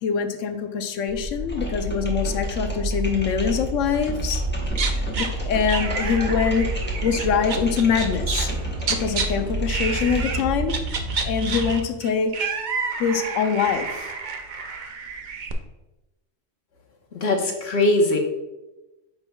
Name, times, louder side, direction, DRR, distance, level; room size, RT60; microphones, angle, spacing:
voice 1, 0.0-4.4 5.0-6.7 7.0-8.5 8.9-10.8 11.2-12.3 13.0-14.1, left 6 dB, 90° left, 8 dB, 1.0 m, -24 dB
sound 1, 1.1-11.7, right 1 dB, 80° right, 1.5 m, -31 dB
sound 2, 1.4-10.7, right 1 dB, 10° left, 1.1 m, -32 dB
sound 3, 4.7-5.3 5.7-8.6 8.8-9.3 9.7-10.4 10.7-15.5, right 5 dB, 50° right, 0.6 m, -30 dB
voice 2, 17.1-18.2, left 2 dB, 60° left, 2 dB, 1.2 m, -21 dB
8.8 x 5.7 x 2.3 m, 1.0 s
omnidirectional pair, 1.3 m